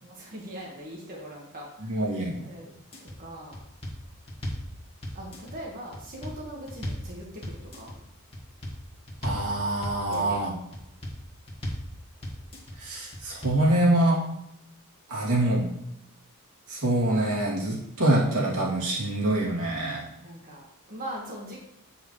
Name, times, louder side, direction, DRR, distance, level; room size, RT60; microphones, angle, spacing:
voice 1, 0.0-2.0 2.4-2.7 3.0-3.7 5.1-8.0 10.0-10.4 20.2-21.6, right 1 dB, 40° right, -3 dB, 1.6 m, -41 dB
voice 2, 1.9-2.4 9.2-10.5 12.8-14.2 15.1-15.7 16.7-20.1, right 1 dB, 80° right, -5 dB, 2.6 m, -25 dB
sound 1, 2.7-3.1 3.5-4.7 5.0-5.6 5.9-7.1 7.4-8.0 8.3-8.8 9.1-9.5 9.8-10.3 10.7-11.2 11.5-11.9 12.2-12.7 13.1-13.6, equal, 25° left, 1.7 m, -36 dB
8.1 x 7.5 x 3.2 m, 0.81 s
head